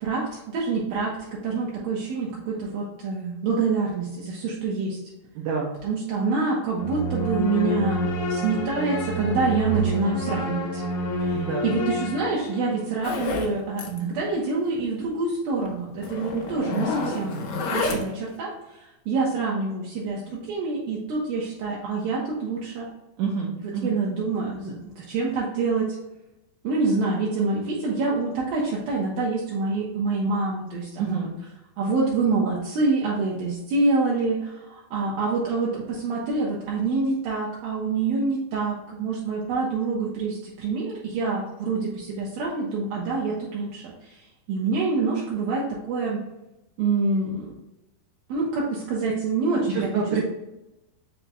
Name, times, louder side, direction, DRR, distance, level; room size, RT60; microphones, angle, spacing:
voice 1, 0.0-5.0 5.8-10.8 11.2-17.4 17.7-22.9 23.6-26.0 26.6-31.2 31.8-44.2 44.5-46.2 46.8-47.5 48.3-49.9, right 3 dB, 70° right, -4 dB, 2.7 m, -26 dB
voice 2, 5.4-5.7 11.3-11.7 23.2-24.0 31.0-31.3 49.7-50.2, right 6 dB, 85° right, -1 dB, 1.8 m, -27 dB
sound 1, 6.8-12.9, equal, 65° left, 1.5 m, -28 dB
Zipper (clothing), 13.0-13.5 13.8-14.0 14.3-14.4 14.8-14.9 15.6-15.7 16.0-18.3, left 3 dB, 85° left, 1.5 m, -28 dB
7.3 x 5.8 x 2.3 m, 0.94 s
omnidirectional pair, 4.7 m